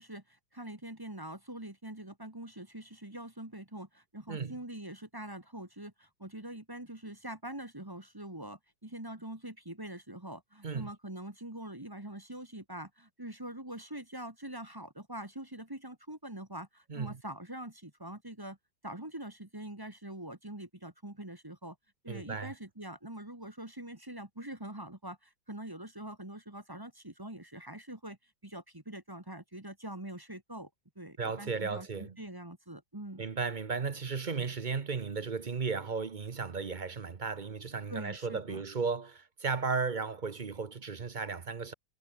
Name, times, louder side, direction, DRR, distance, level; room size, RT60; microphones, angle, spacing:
voice 1, 0.0-18.6 18.8-21.8 22.0-28.2 28.4-30.7 31.0-33.2 37.9-38.6, right 1 dB, 10° right, 1.8 m, -44 dB
voice 2, 22.1-22.5 31.2-32.2 33.2-41.7, right 5 dB, 35° right, 0.8 m, -35 dB
omnidirectional pair, 1.9 m